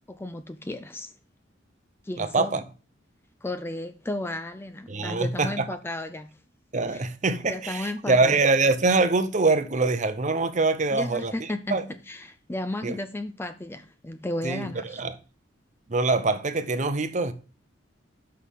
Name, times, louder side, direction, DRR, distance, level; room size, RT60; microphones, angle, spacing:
voice 1, 0.1-1.1 2.0-2.6 3.4-6.3 6.9-7.0 7.5-8.4 10.9-15.0, left 1 dB, 10° left, 0.4 m, -34 dB
voice 2, 2.2-2.6 4.9-5.7 6.7-11.3 11.7-11.8 12.8-13.0 14.4-15.1 15.9-17.3, right 3 dB, 40° right, 0.7 m, -24 dB
5.7 x 5.5 x 6.4 m
head